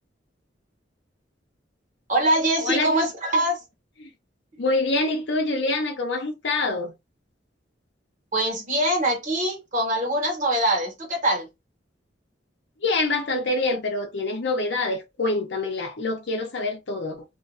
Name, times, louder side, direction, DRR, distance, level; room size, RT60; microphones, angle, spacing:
voice 1, 2.1-3.6 4.5-4.6 8.3-11.5, right 1 dB, 45° right, 1.2 m, -23 dB
voice 2, 2.6-2.9 4.0-4.1 4.6-6.9 12.8-17.2, left 2 dB, 70° left, 0.7 m, -25 dB
2.5 x 2.2 x 2.5 m
head